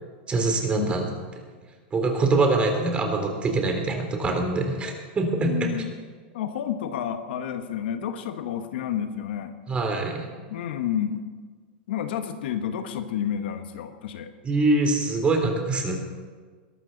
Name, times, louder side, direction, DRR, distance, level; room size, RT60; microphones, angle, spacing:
voice 1, 0.3-1.0 1.9-5.7 9.7-10.2 14.4-16.0, right 3 dB, 20° right, 3 dB, 3.4 m, -24 dB
voice 2, 5.4-5.9 6.3-9.6 10.5-11.3 11.9-14.3, left 9 dB, 75° left, 8 dB, 1.3 m, -30 dB
21.5 x 12.5 x 4.0 m, 1.5 s
hypercardioid pair, 125°, 6 cm